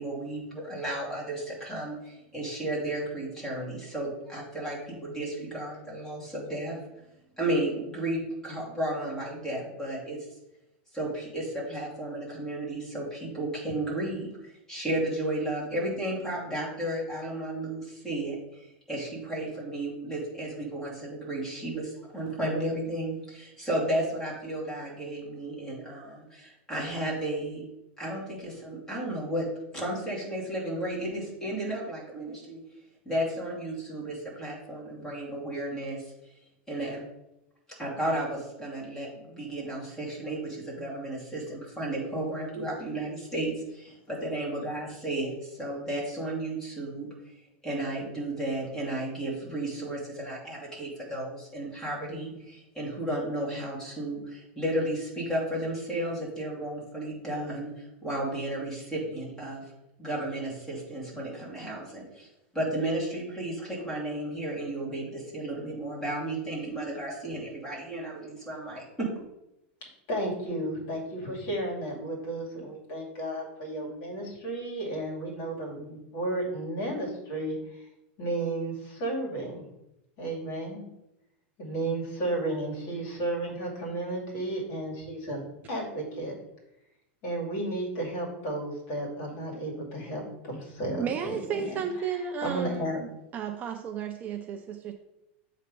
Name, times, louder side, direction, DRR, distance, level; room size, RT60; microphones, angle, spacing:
voice 1, 0.0-6.8 7.4-10.3 10.9-27.6 28.0-29.5 29.7-32.6 33.0-36.1 36.7-37.0 37.8-47.3 47.6-59.6 60.0-62.3 62.5-69.1, right 1 dB, 5° left, -5 dB, 2.6 m, -33 dB
voice 2, 70.1-77.9 78.2-79.6 80.2-80.8 81.6-85.4 85.7-86.3 87.2-91.8 92.4-93.0, right 1 dB, 40° left, -1 dB, 2.4 m, -33 dB
voice 3, 91.0-94.9, right 7 dB, 25° right, 5 dB, 0.4 m, -33 dB
7.7 x 3.3 x 5.2 m, 0.89 s
supercardioid pair, 155°, 6 cm